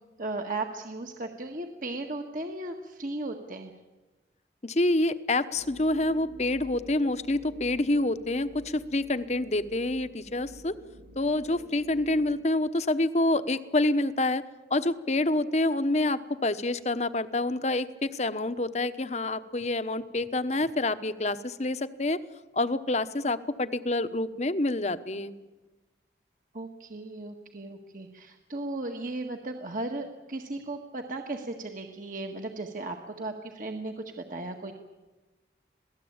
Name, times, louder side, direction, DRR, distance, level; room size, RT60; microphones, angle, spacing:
voice 1, 0.2-3.7 26.5-34.7, right 2 dB, 50° right, 4 dB, 1.6 m, -36 dB
voice 2, 4.6-10.8 11.2-14.4 14.7-22.2 22.5-25.3, left 2 dB, 40° left, 12 dB, 1.0 m, -27 dB
sound 1, 5.5-12.4, right 1 dB, 90° right, 1.9 m, -50 dB
27.0 x 18.0 x 8.8 m, 1.1 s
head